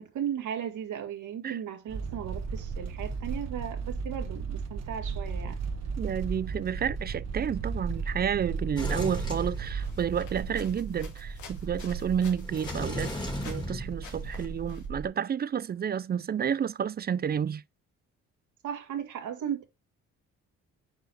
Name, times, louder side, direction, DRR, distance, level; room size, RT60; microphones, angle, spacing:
voice 1, 0.0-5.6 18.6-19.6, right 9 dB, 75° right, 2.0 m, -36 dB
sound 1, 1.9-15.0, right 5 dB, 60° right, 1.3 m, -35 dB
voice 2, 6.0-13.1 13.4-17.6, right 8 dB, 35° right, 0.4 m, -30 dB
Sliding door, 8.8-10.3 12.4-14.5, left 1 dB, 15° left, 2.4 m, -36 dB
sound 2, 9.8-13.7 14.0-14.8, left 6 dB, 75° left, 2.2 m, -50 dB
6.4 x 4.8 x 4.7 m
cardioid pair, 90°, 30 cm